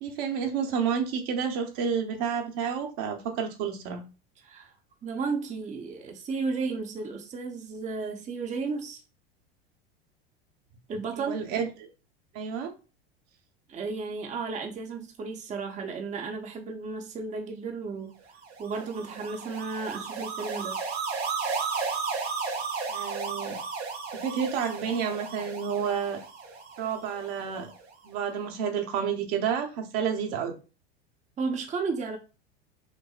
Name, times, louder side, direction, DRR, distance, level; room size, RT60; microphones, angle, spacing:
voice 1, 0.0-4.0 11.2-11.9 12.3-12.7 22.9-23.6 24.1-26.2 26.8-27.7 28.0-30.6, right 7 dB, 60° right, 1.0 m, -30 dB
voice 2, 5.0-9.0 10.9-11.4 13.7-18.1 18.6-20.8 31.4-32.2, right 4 dB, 25° right, 0.7 m, -33 dB
sound 1, 18.4-27.7, right 5 dB, 85° right, 1.0 m, -34 dB
5.7 x 2.0 x 2.4 m
hypercardioid pair, 90°, 31 cm